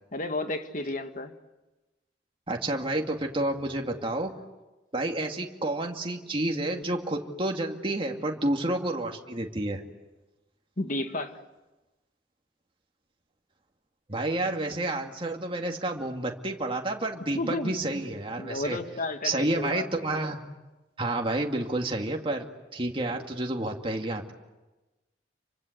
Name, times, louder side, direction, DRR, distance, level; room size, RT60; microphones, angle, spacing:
voice 1, 0.1-1.3 10.8-11.4 17.3-18.0 18.4-19.9, left 2 dB, 50° left, 7 dB, 2.0 m, -32 dB
voice 2, 2.5-4.3 4.9-9.8 14.1-18.8 19.2-20.4 21.0-22.5 22.7-24.3, right 2 dB, 30° right, 2 dB, 2.4 m, -30 dB
29.5 x 25.0 x 8.1 m, 1.1 s
head